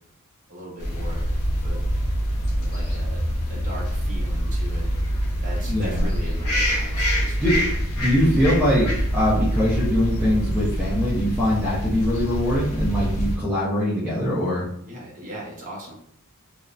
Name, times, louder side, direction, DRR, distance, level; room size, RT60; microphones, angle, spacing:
voice 1, 0.5-1.3 1.6-1.9 2.6-3.2 3.5-7.6 14.9-16.0, equal, 35° right, -5 dB, 0.8 m, -39 dB
sound 1, 0.8-13.4, equal, 75° left, 0.6 m, -25 dB
voice 2, 5.6-6.1 7.4-7.5 8.0-14.7, equal, 10° right, -8 dB, 0.5 m, -22 dB
2.6 x 2.0 x 2.4 m, 0.69 s
head